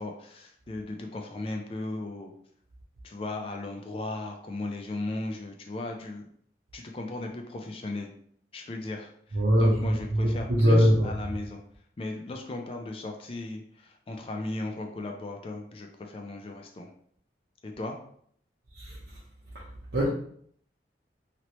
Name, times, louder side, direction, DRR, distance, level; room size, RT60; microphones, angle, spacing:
voice 1, 0.0-2.3 3.0-6.3 6.7-8.1 8.5-11.6 12.0-16.9 17.6-18.0, left 2 dB, 30° left, 3 dB, 0.4 m, -36 dB
voice 2, 9.3-11.1 18.8-19.0 19.9-20.1, equal, 75° right, -8 dB, 0.8 m, -22 dB
3.0 x 2.9 x 2.9 m, 0.62 s
head